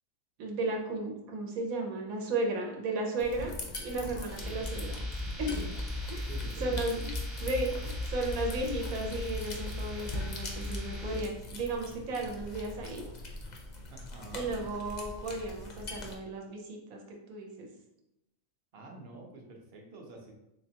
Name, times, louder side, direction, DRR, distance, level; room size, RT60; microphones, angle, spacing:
voice 1, 0.4-3.5 3.8-5.0 5.4-5.7 6.1-6.3 6.6-7.1 7.4-13.0 14.3-17.7, right 2 dB, 85° right, 1 dB, 1.1 m, -34 dB
sound 1, 3.2-16.2, left 2 dB, 55° left, 0.5 m, -43 dB
sound 2, 4.4-11.2, left 2 dB, ahead, 0.5 m, -37 dB
voice 2, 6.3-6.8 13.9-14.6 18.7-20.3, right 2 dB, 55° right, 1 dB, 0.8 m, -47 dB
3.3 x 3.2 x 2.8 m, 0.86 s
omnidirectional pair, 1.4 m